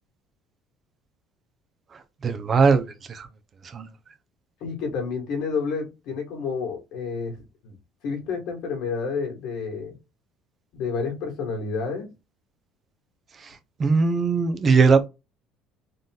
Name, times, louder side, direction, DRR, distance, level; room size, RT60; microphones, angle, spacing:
voice 1, 2.2-3.3 3.7-3.9 13.4-15.1, right 4 dB, 35° right, 0.7 m, -20 dB
voice 2, 4.6-7.3 7.6-7.8 8.0-10.0 10.7-12.1, left 5 dB, 70° left, 2.0 m, -29 dB
3.9 x 2.5 x 3.8 m
cardioid pair, 110°, 0 cm